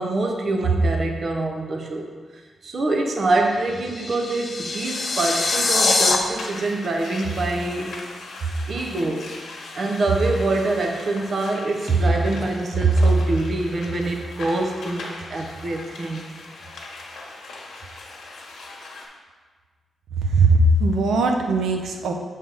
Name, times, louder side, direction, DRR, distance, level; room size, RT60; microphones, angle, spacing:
voice 1, 0.0-7.9 8.7-9.2 9.7-16.3, right 2 dB, 40° right, 2 dB, 0.5 m, -24 dB
sound 1, 3.5-6.2, left 3 dB, 30° left, 0.6 m, -23 dB
sound 2, 6.0-19.1, left 2 dB, 65° left, 1.2 m, -39 dB
voice 2, 20.1-22.1, right 2 dB, 80° right, 3 dB, 0.6 m, -19 dB
7.2 x 3.3 x 5.4 m, 1.5 s
wide cardioid pair, 165°, 0 cm